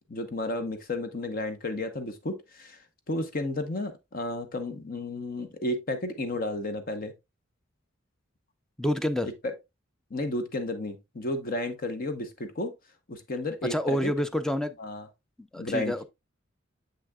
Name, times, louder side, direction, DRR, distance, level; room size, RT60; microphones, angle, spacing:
voice 1, 0.1-2.8 3.1-7.1 9.2-9.5 10.1-12.7 13.1-14.1 14.8-15.1 15.6-16.0, left 2 dB, 45° left, 0.8 m, -32 dB
voice 2, 8.8-9.3 13.7-14.8 15.5-16.0, equal, 5° left, 0.4 m, -28 dB
6.9 x 6.3 x 2.2 m
head